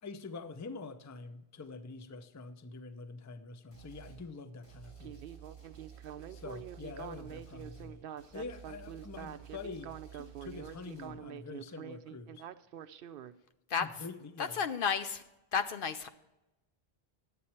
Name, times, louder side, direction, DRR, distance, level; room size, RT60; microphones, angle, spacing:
voice 1, 0.0-5.2 6.3-8.0 8.3-12.5 13.7-14.6, left 4 dB, 20° left, 10 dB, 0.5 m, -46 dB
sound 1, 3.7-4.2 4.6-11.1, right 8 dB, 85° left, 4.1 m, -52 dB
Speech synthesizer, 5.0-13.3, right 9 dB, 65° right, 0.7 m, -46 dB
voice 2, 14.4-15.2 15.5-16.1, left 6 dB, 65° left, 10 dB, 0.7 m, -32 dB
11.0 x 8.4 x 4.3 m, 0.97 s
omnidirectional pair, 1.1 m